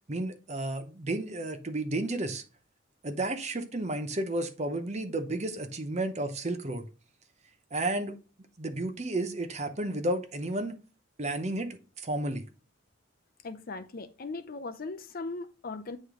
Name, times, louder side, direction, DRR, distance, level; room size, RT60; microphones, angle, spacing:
voice 1, 0.1-2.4 3.0-6.8 7.7-8.2 8.6-10.8 11.2-12.4, right 1 dB, 35° right, 0.7 m, -32 dB
voice 2, 13.4-16.0, left 3 dB, 45° left, 0.5 m, -38 dB
8.7 x 3.2 x 3.7 m
head